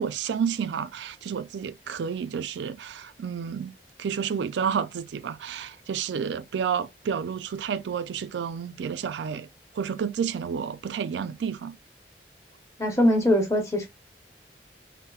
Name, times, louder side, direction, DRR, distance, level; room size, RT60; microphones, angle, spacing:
voice 1, 0.0-3.7 4.0-9.5 9.8-11.8, right 7 dB, 80° right, 0.3 m, -30 dB
voice 2, 12.8-13.9, left 1 dB, 15° left, 0.9 m, -22 dB
4.1 x 2.0 x 2.3 m
head